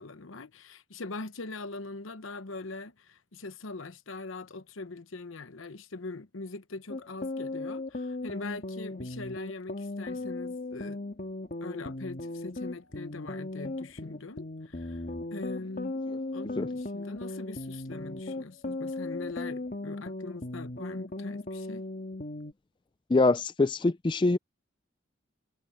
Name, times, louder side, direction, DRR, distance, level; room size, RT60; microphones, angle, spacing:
voice 1, 0.0-11.0 11.6-15.0 15.3-15.9 16.3-21.9, left 3 dB, 90° left, 1.0 m, -42 dB
sound 1, 6.9-22.5, left 2 dB, 45° left, 1.7 m, -37 dB
voice 2, 23.1-24.4, left 3 dB, 25° left, 0.4 m, -24 dB
head